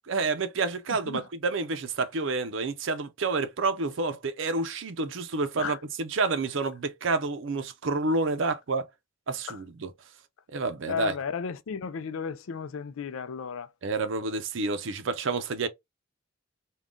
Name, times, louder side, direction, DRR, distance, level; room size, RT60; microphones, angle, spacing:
voice 1, 0.1-8.9 9.3-9.9 10.5-11.1 13.8-15.7, right 3 dB, 65° right, 0.5 m, -29 dB
voice 2, 10.9-13.7, left 6 dB, 80° left, 0.4 m, -33 dB
3.6 x 2.3 x 3.6 m
head